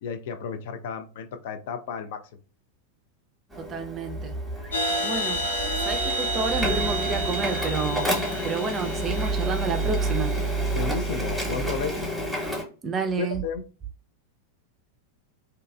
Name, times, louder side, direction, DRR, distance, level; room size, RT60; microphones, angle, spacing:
voice 1, 0.0-2.2 10.7-12.1 13.2-13.6, left 6 dB, 55° left, 0.3 m, -32 dB
Printer, 3.5-12.6, right 1 dB, 5° right, 0.9 m, -29 dB
voice 2, 3.6-4.3 5.0-5.5 5.8-8.1 8.4-10.3 12.8-13.4, right 4 dB, 25° right, 0.4 m, -30 dB
sound 1, 4.7-10.3, right 1 dB, 75° left, 0.8 m, -30 dB
2.7 x 2.3 x 2.3 m
figure-of-eight pair, 90°, 0 cm